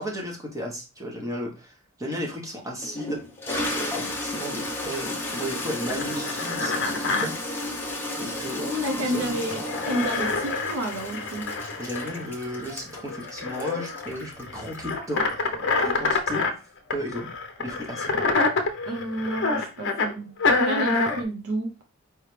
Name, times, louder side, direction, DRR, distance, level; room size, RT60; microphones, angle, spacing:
voice 1, 0.0-3.2 3.6-7.7 8.2-9.4 11.8-16.4 16.9-17.3 17.6-18.2, equal, 15° right, 1.0 m, -34 dB
Toilet flush, 2.1-2.2 2.8-15.3, left 1 dB, 10° left, 0.9 m, -33 dB
sound 1, 5.3-7.3 9.5-16.5 16.9-20.1 20.4-21.2, left 3 dB, 55° left, 0.7 m, -27 dB
voice 2, 8.8-11.5 18.9-20.3 20.6-21.7, right 1 dB, 75° right, 0.6 m, -30 dB
4.6 x 3.2 x 3.2 m
head